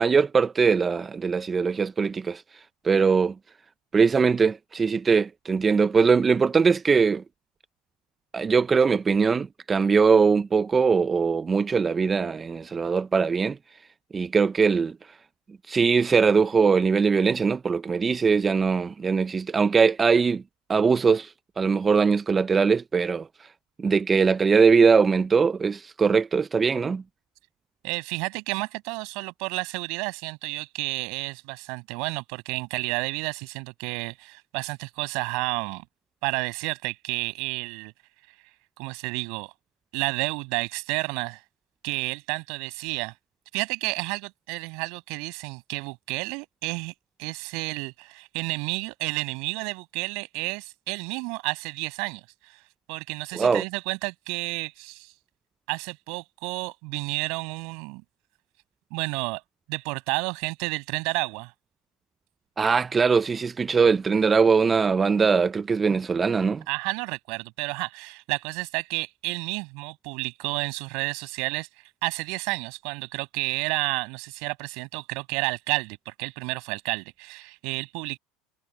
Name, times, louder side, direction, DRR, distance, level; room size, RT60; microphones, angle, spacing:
voice 1, 0.0-3.3 3.9-7.2 8.3-13.6 14.1-15.0 15.7-20.4 20.7-23.5 23.8-27.0 53.3-53.6 62.6-66.6, right 5 dB, 20° right, 0.3 m, -21 dB
voice 2, 27.8-35.8 36.2-37.9 38.8-39.5 39.9-41.4 41.8-43.1 43.5-46.9 47.2-52.6 52.9-55.1 55.7-58.0 58.9-59.4 59.7-61.5 66.7-71.7 72.0-78.2, right 30 dB, 65° right, 7.8 m, -31 dB
cardioid pair, 145°, 0 cm